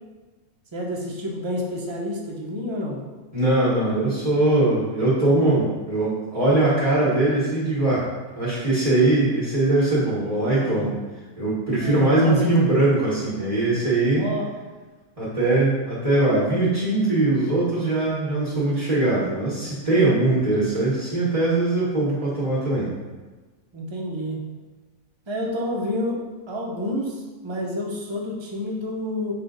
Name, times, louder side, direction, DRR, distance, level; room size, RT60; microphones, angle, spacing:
voice 1, 0.7-3.1 10.6-10.9 11.8-12.8 14.2-14.5 23.7-24.5 25.3-29.3, left 1 dB, 45° right, -2 dB, 0.3 m, -29 dB
voice 2, 3.3-8.1 8.3-10.9 11.4-14.3 15.2-22.9, right 2 dB, 25° right, -9 dB, 1.2 m, -21 dB
5.5 x 2.4 x 3.8 m, 1.3 s
omnidirectional pair, 1.4 m